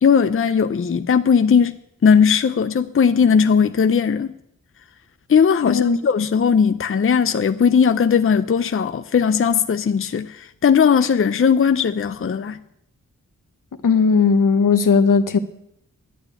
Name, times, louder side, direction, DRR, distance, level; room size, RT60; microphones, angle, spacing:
voice 1, 0.0-4.3 5.3-12.6, left 6 dB, 40° left, 0.6 m, -18 dB
voice 2, 5.6-6.0 13.8-15.4, left 5 dB, 75° left, 1.0 m, -16 dB
11.0 x 8.9 x 8.4 m
wide cardioid pair, 65°, 32 cm